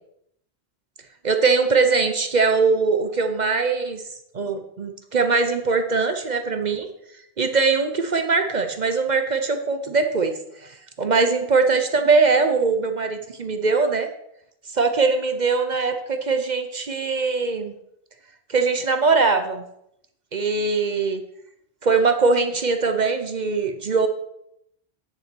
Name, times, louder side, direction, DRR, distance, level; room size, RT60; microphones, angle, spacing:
voice 1, 1.2-4.0 4.3-6.9 7.4-14.1 14.7-17.7 18.5-19.6 20.3-21.2 21.8-24.1, right 4 dB, 45° right, 7 dB, 0.8 m, -21 dB
9.8 x 7.0 x 4.5 m, 0.77 s
omnidirectional pair, 1.1 m